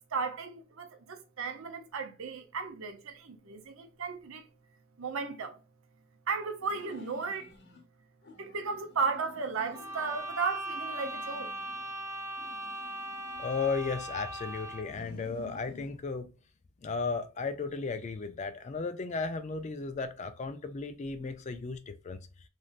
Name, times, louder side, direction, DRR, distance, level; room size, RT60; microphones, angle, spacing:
voice 1, 0.1-4.4 5.0-5.6 6.3-7.5 8.4-11.5, right 4 dB, 65° right, 0.6 m, -35 dB
sound 1, 6.6-7.8 8.2-10.3 10.7-11.9 12.4-14.3 14.8-16.0, left 5 dB, 55° left, 0.9 m, -52 dB
sound 2, 9.7-15.0, right 1 dB, 15° right, 0.7 m, -39 dB
voice 2, 13.4-16.3 16.8-22.2, left 4 dB, 35° left, 0.3 m, -35 dB
3.2 x 2.5 x 2.4 m
head